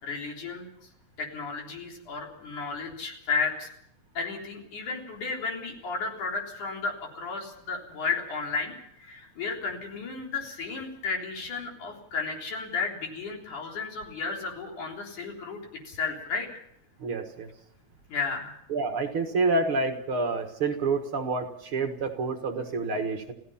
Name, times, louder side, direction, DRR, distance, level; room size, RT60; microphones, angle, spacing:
voice 1, 0.0-0.7 1.2-3.7 4.2-8.7 9.0-15.6 15.9-16.5 18.1-18.5, left 4 dB, 85° left, 1 dB, 5.1 m, -33 dB
voice 2, 17.0-17.5 18.7-23.3, right 3 dB, 50° right, 4 dB, 2.2 m, -28 dB
28.0 x 16.5 x 5.7 m, 0.75 s
omnidirectional pair, 3.4 m